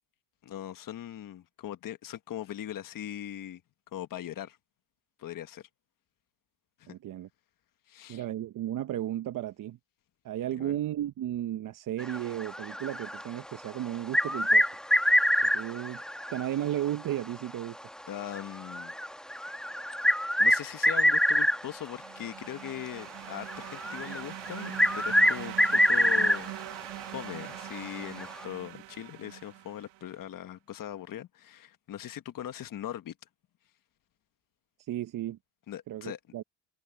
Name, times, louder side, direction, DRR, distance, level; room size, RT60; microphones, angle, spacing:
voice 1, 0.4-3.6 3.9-4.6 5.2-5.7 6.8-6.9 7.9-8.2 10.6-10.7 18.1-18.9 20.4-33.1 35.7-36.2, left 11 dB, 50° left, 1.4 m, -40 dB
voice 2, 6.9-7.3 8.1-9.8 10.2-14.7 15.4-16.0 16.3-17.8 34.8-35.4 35.9-36.4, right 12 dB, 50° right, 0.8 m, -34 dB
sound 1, 12.0-13.5 13.9-16.6 16.9-17.0 17.6-17.7 18.3-21.9 22.7-22.9 23.5-26.6 27.0-27.1 28.2-28.4, equal, ahead, 1.1 m, -25 dB
sound 2, 21.5-30.1, right 19 dB, 75° right, 1.3 m, -43 dB
supercardioid pair, 90°, 43 cm